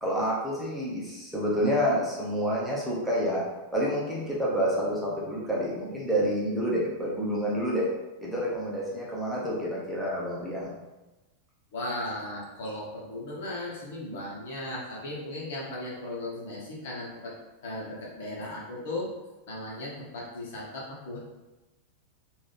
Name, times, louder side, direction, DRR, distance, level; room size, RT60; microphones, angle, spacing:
voice 1, 0.0-3.4 3.7-7.9 8.2-10.7, equal, ahead, -7 dB, 1.0 m, -28 dB
voice 2, 11.7-17.3 17.6-19.1 19.5-21.2, left 1 dB, 55° left, -4 dB, 1.2 m, -36 dB
3.7 x 2.6 x 3.4 m, 1.1 s
figure-of-eight pair, 90°, 0 cm